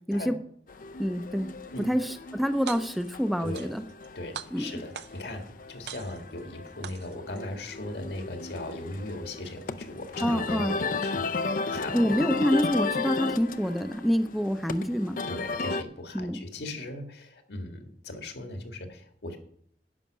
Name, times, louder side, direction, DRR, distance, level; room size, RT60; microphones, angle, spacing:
sound 1, 0.7-15.8, left 3 dB, 50° left, 0.5 m, -35 dB
voice 1, 1.0-1.5 1.8-3.8 4.5-4.7 10.2-10.8 11.9-15.2 16.1-16.4, equal, ahead, 9 dB, 0.6 m, -27 dB
sound 2, 2.5-3.1 3.5-4.1 4.3-5.4 5.9-6.4 6.8-7.4, right 9 dB, 70° right, 0.5 m, -41 dB
voice 2, 3.4-3.7 4.2-12.2 15.3-19.4, left 1 dB, 70° left, 5 dB, 1.8 m, -38 dB
11.0 x 5.8 x 7.4 m, 0.66 s
head